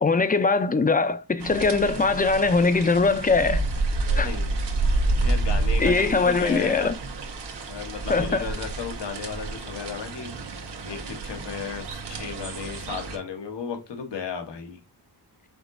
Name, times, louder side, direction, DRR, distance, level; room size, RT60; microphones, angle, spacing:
voice 1, 0.0-3.7 4.2-4.3 5.8-6.9 8.1-8.5, left 4 dB, 20° left, 0.4 m, -21 dB
sound 1, 1.4-13.2, right 2 dB, 85° right, 1.0 m, -29 dB
voice 2, 4.0-4.6 5.2-6.9 7.7-10.3 10.8-14.8, left 6 dB, 90° left, 1.0 m, -34 dB
5.0 x 3.8 x 2.5 m
wide cardioid pair, 90°, 41 cm